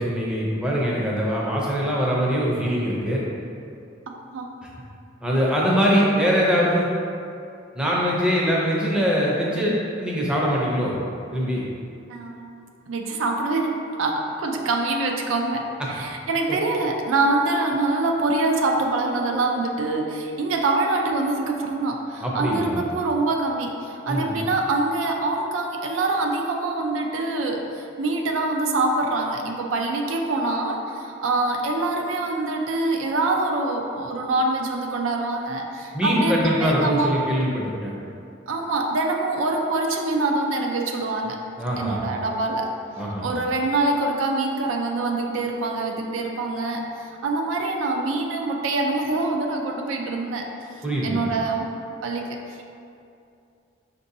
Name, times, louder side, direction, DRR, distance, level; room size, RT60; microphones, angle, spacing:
voice 1, 0.0-3.2 5.2-6.9 7.7-10.9 11.3-11.6 22.2-22.8 24.1-24.3 35.9-37.9 41.6-42.0 43.0-43.3 50.8-51.3, equal, 5° right, -5 dB, 0.5 m, -22 dB
voice 2, 4.1-4.5 12.1-12.6 12.9-37.2 38.5-41.4 41.8-42.7 43.2-50.5 51.0-51.7 52.0-52.2 52.5-52.6, right 2 dB, 80° right, 2 dB, 0.4 m, -25 dB
5.2 x 2.6 x 2.6 m, 2.5 s
head